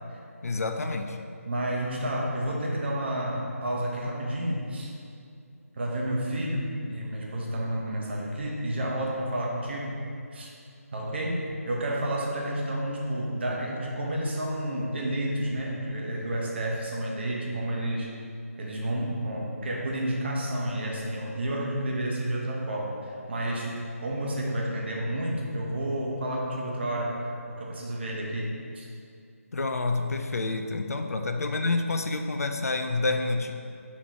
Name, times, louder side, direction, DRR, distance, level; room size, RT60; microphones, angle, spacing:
voice 1, 0.4-1.2 29.5-33.5, left 3 dB, 70° left, 6 dB, 0.4 m, -28 dB
voice 2, 1.5-4.9 5.7-10.0 10.3-10.5 10.9-18.1 18.6-27.2 27.5-28.9 31.2-31.3, right 1 dB, 45° right, -2 dB, 0.8 m, -30 dB
5.0 x 3.1 x 3.0 m, 2.5 s
figure-of-eight pair, 155°, 8 cm